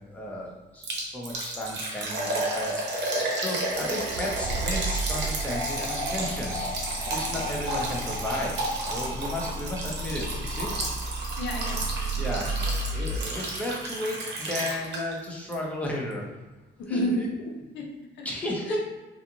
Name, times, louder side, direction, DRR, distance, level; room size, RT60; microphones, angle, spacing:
voice 1, 0.1-6.7 7.1-10.7 12.2-12.5 12.9-16.4 16.9-17.3 18.2-18.8, left 1 dB, 5° left, -2 dB, 0.7 m, -34 dB
Liquid, 0.8-15.2 15.5-15.6 16.1-16.2, right 2 dB, 60° right, 0.7 m, -32 dB
sound 1, 3.0-7.9, left 4 dB, 35° left, 1.4 m, -43 dB
Accelerating revving vroom, 3.6-13.2, right 2 dB, 90° right, 0.5 m, -34 dB
voice 2, 11.4-12.3 16.8-18.3 18.7-18.8, equal, 70° left, 1 dB, 0.5 m, -32 dB
2.4 x 2.4 x 2.9 m, 1.2 s
cardioid pair, 90°, 20 cm